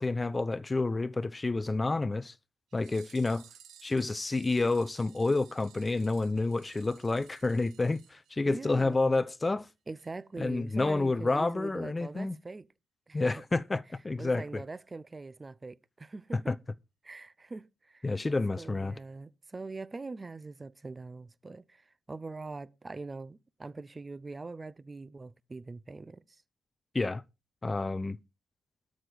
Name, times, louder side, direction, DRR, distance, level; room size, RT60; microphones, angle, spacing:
voice 1, 0.0-2.3 2.7-3.4 3.8-9.7 10.4-12.4 13.1-14.6 16.3-16.6 18.0-19.0 26.9-27.2 27.6-28.2, left 3 dB, 20° left, 0.6 m, -29 dB
sound 1, 2.7-8.9 9.2-9.3 9.5-9.6 10.0-10.1 10.4-10.5, right 9 dB, 75° right, 2.2 m, -57 dB
voice 2, 8.4-9.2 9.9-12.7 13.1-13.4 14.2-16.5 17.0-18.1 18.6-26.2, right 3 dB, 25° right, 0.6 m, -43 dB
12.5 x 6.4 x 5.2 m
cardioid pair, 90°, 0 cm